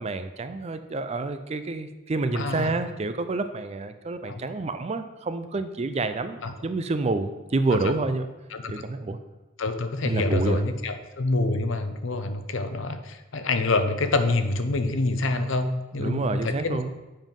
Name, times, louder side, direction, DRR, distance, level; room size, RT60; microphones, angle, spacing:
voice 1, 0.0-8.3 8.7-9.2 10.0-10.6 16.0-16.9, right 3 dB, 30° right, 10 dB, 0.4 m, -28 dB
voice 2, 2.3-2.8 4.2-4.4 6.4-6.5 7.7-7.9 8.5-8.7 9.6-16.9, left 2 dB, 60° left, 8 dB, 0.7 m, -27 dB
7.3 x 5.6 x 5.3 m, 1.1 s
head